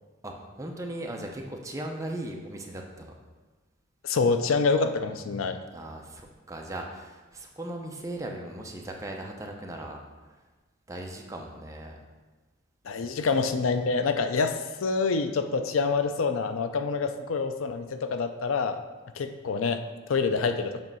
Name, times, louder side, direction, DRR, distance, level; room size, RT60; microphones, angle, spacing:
voice 1, 0.2-3.1 5.7-10.0 10.9-12.0 20.3-20.4, right 1 dB, 15° right, 1 dB, 0.6 m, -38 dB
voice 2, 4.0-5.6 12.9-18.8 19.1-20.8, left 4 dB, 80° left, 8 dB, 0.5 m, -26 dB
7.4 x 3.2 x 5.4 m, 1.3 s
head